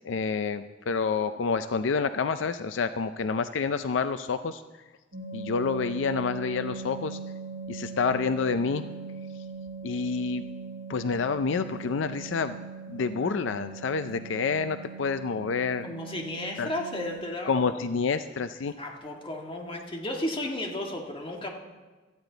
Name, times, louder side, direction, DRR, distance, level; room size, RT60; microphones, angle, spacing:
voice 1, 0.0-4.6 5.3-7.2 7.7-8.8 9.8-10.4 10.9-12.6 12.9-15.9 16.6-16.7 17.5-18.7, left 5 dB, 75° left, 11 dB, 0.4 m, -28 dB
sound 1, 5.1-17.2 19.1-19.3 19.5-19.7 20.1-20.2 20.5-20.8, right 5 dB, 75° right, 2.7 m, -40 dB
voice 2, 15.8-17.8 18.8-21.5, left 1 dB, 30° left, 1 dB, 1.8 m, -34 dB
17.0 x 13.0 x 4.0 m, 1.3 s
head